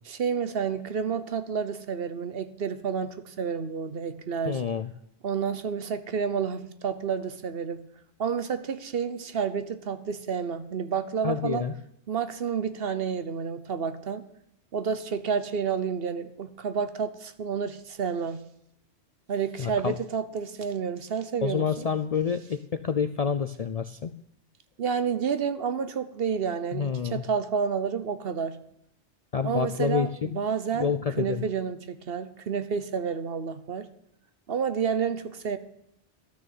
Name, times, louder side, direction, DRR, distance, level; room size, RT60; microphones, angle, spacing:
voice 1, 0.1-4.6 5.2-7.8 8.2-11.6 12.1-14.2 14.7-18.4 19.3-21.9 24.8-28.6 29.4-33.9 34.5-35.6, right 6 dB, 60° right, 11 dB, 1.0 m, -30 dB
voice 2, 4.5-4.9 11.2-11.7 19.6-20.0 21.4-24.2 26.7-27.2 29.3-30.4 30.7-31.4, left 6 dB, 50° left, 10 dB, 0.4 m, -28 dB
12.5 x 6.5 x 9.1 m, 0.76 s
omnidirectional pair, 1.2 m